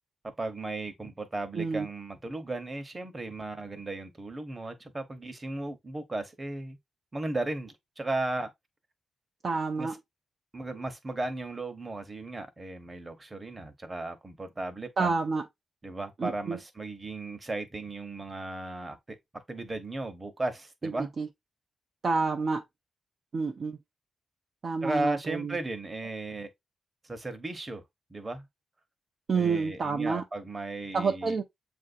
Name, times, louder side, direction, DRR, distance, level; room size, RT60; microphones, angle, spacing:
voice 1, 0.4-6.8 7.1-8.5 9.8-10.0 10.5-15.1 15.8-21.1 24.8-26.5 27.0-27.8 28.1-28.5 29.3-31.4, right 2 dB, 20° right, 0.9 m, -35 dB
voice 2, 1.6-1.9 9.4-10.0 15.0-15.5 16.2-16.6 20.8-21.3 22.0-22.6 23.3-23.8 24.6-25.6 29.3-30.2 30.9-31.4, right 4 dB, 45° right, 0.5 m, -29 dB
7.4 x 2.6 x 2.5 m
wide cardioid pair, 125°, 0 cm